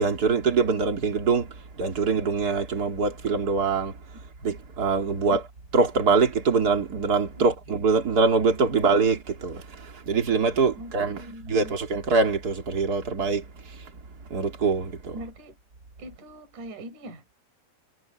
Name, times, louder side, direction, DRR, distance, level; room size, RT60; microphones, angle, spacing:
voice 1, 0.0-3.9 4.4-5.4 5.7-11.2 11.5-13.4 14.3-15.1, right 4 dB, 25° right, 2.4 m, -24 dB
voice 2, 10.8-11.8 15.1-15.6 16.0-17.3, right 1 dB, 40° right, 5.7 m, -41 dB
omnidirectional pair, 5.5 m